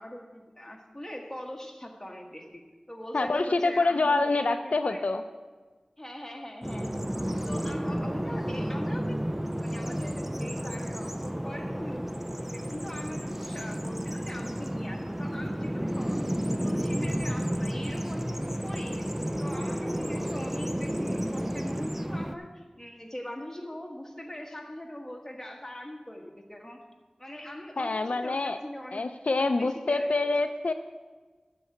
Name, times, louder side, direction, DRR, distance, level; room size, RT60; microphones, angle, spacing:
voice 1, 0.0-5.0 6.0-7.1 7.4-12.1 12.4-16.3 16.6-19.1 19.4-26.8 27.2-30.3, left 1 dB, 15° left, 1 dB, 1.5 m, -42 dB
voice 2, 3.1-5.2 27.8-28.6 28.9-30.7, left 3 dB, 80° left, 8 dB, 0.4 m, -26 dB
Bird vocalization bird call bird song, 6.6-22.4, equal, 10° right, 0.4 m, -32 dB
12.0 x 4.6 x 7.8 m, 1.3 s
wide cardioid pair, 55°, 2 cm